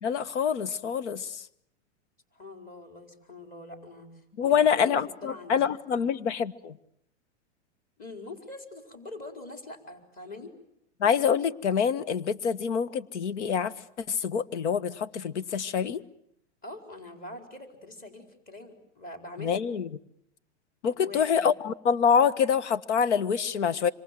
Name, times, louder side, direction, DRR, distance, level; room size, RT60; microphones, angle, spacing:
voice 1, 0.0-1.4 4.4-6.8 11.0-13.7 14.1-16.0 19.4-19.9 20.8-23.9, left 7 dB, 75° left, 14 dB, 1.5 m, -26 dB
voice 2, 2.3-5.5 8.0-10.5 16.6-19.6 20.9-21.5, left 2 dB, 25° left, 5 dB, 4.6 m, -44 dB
26.5 x 25.5 x 7.8 m, 0.75 s
hypercardioid pair, 140°, 35 cm